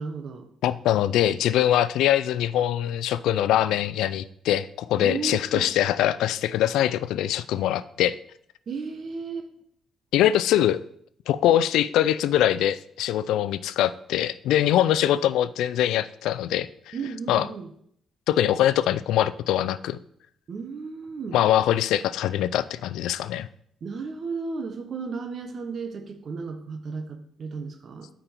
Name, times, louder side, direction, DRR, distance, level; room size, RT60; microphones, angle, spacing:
voice 1, 0.0-0.5 5.0-5.7 8.7-9.5 14.9-15.1 16.9-17.7 20.5-21.4 23.8-28.1, right 5 dB, 50° right, 6 dB, 1.1 m, -34 dB
voice 2, 0.6-8.1 10.1-10.8 11.3-16.9 17.3-17.5 18.3-20.0 21.3-23.5, left 12 dB, 85° left, 16 dB, 0.4 m, -23 dB
8.9 x 5.2 x 4.4 m, 0.67 s
cardioid pair, 90°, 0 cm